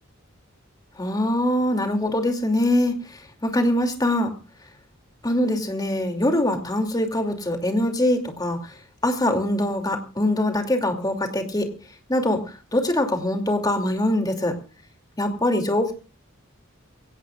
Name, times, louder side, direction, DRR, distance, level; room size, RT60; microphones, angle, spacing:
voice 1, 1.0-4.3 5.2-8.7 9.0-11.7 12.1-14.5 15.2-15.9, left 1 dB, 20° left, 4 dB, 2.7 m, -23 dB
24.0 x 17.0 x 2.4 m, 0.33 s
head